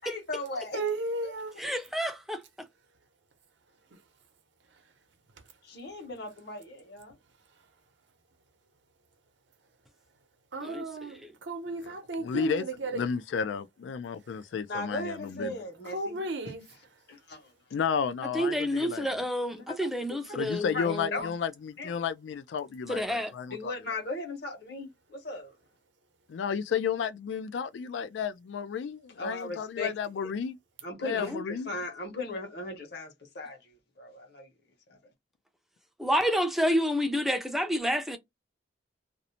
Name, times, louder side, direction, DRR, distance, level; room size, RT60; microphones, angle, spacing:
voice 1, 0.0-0.8 1.2-1.3 5.6-7.1 14.7-16.1 17.1-17.4 20.7-20.9 21.1-21.3 21.8-21.9 23.5-25.5 29.2-29.9 30.2-30.3 30.8-33.6 34.0-34.5, left 2 dB, 60° left, 1.1 m, -37 dB
voice 2, 0.5-1.6 10.5-13.0 15.8-16.6, right 2 dB, 80° right, 0.7 m, -34 dB
voice 3, 1.6-2.7 10.6-10.8 11.2-11.3 15.4-15.5 18.3-21.2 22.9-23.3 31.2-31.4 36.0-38.2, equal, ahead, 0.4 m, -29 dB
voice 4, 12.2-12.6 12.9-15.6 17.7-19.2 20.3-23.7 26.3-30.6 31.0-31.7, left 7 dB, 80° left, 0.3 m, -32 dB
2.6 x 2.0 x 2.8 m
head